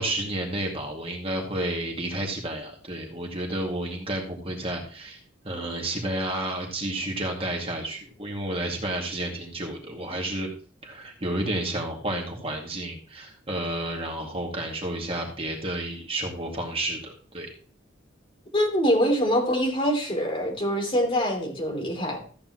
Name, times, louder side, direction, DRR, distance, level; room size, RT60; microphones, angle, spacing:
voice 1, 0.0-5.2 5.4-10.5 10.8-17.5, right 1 dB, 30° right, 1 dB, 2.2 m, -31 dB
voice 2, 18.5-22.2, equal, 25° left, 1 dB, 3.0 m, -24 dB
14.0 x 8.6 x 3.0 m, 0.41 s
head